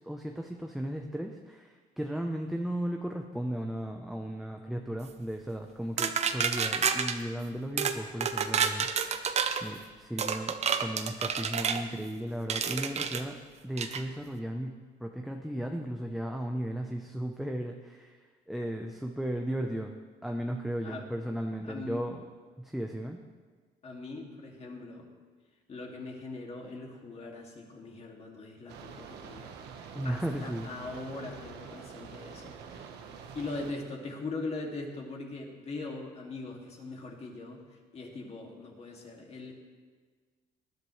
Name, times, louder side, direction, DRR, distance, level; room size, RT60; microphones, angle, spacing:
voice 1, 0.0-1.7 2.0-8.9 9.6-13.4 13.6-18.1 18.5-19.9 20.2-22.2 22.6-23.2 29.9-30.7, right 1 dB, ahead, 2 dB, 0.8 m, -35 dB
sound 1, 6.0-7.2 7.8-8.0 8.2-9.6 10.2-11.8 12.5-13.2 13.8-14.0, right 6 dB, 40° right, 0.8 m, -29 dB
voice 2, 21.6-22.0 23.8-25.1 25.7-29.6 30.0-32.9 33.3-37.6 37.9-39.5, left 3 dB, 40° left, 0 dB, 2.4 m, -41 dB
sound 2, 28.7-33.7, right 6 dB, 80° right, 1.3 m, -46 dB
19.5 x 10.5 x 3.3 m, 1.5 s
cardioid pair, 110°, 17 cm